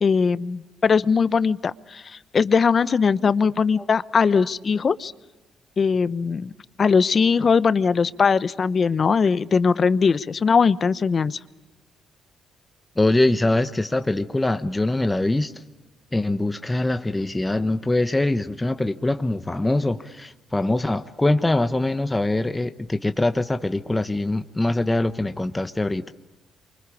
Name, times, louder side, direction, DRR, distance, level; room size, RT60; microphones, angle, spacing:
voice 1, 0.0-5.1 5.8-6.5 6.8-11.4, left 5 dB, 40° left, 16 dB, 0.9 m, -20 dB
voice 2, 13.0-15.6 16.1-26.0, left 2 dB, 15° left, 9 dB, 1.1 m, -23 dB
28.5 x 24.5 x 8.5 m, 1.1 s
cardioid pair, 90°, 0 cm